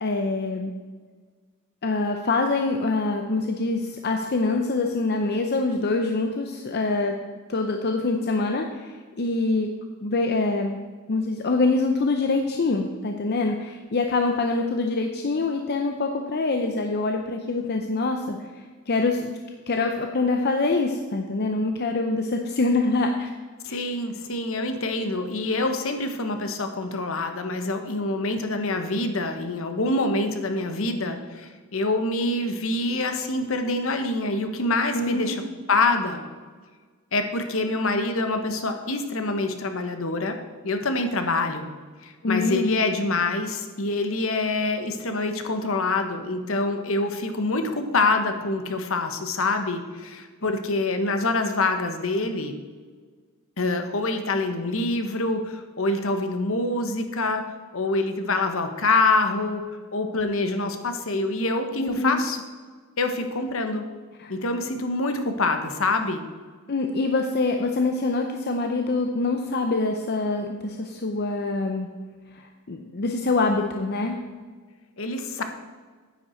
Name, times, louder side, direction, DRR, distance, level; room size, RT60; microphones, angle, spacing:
voice 1, 0.0-0.7 1.8-7.2 7.5-9.7 10.0-10.8 11.1-18.5 18.9-19.3 19.7-23.3 23.6-23.8 34.9-35.4 42.2-42.8 50.4-50.5 61.8-62.2 64.2-64.3 66.7-71.9 72.3-74.2, left 3 dB, 50° left, 4 dB, 0.7 m, -25 dB
voice 2, 23.6-35.4 35.7-36.2 37.1-40.4 40.6-41.7 42.0-52.6 53.6-57.4 57.7-59.6 59.9-62.4 63.0-63.8 64.3-66.2 75.0-75.4, left 2 dB, 65° left, 6 dB, 1.1 m, -26 dB
9.8 x 9.0 x 4.4 m, 1.5 s
head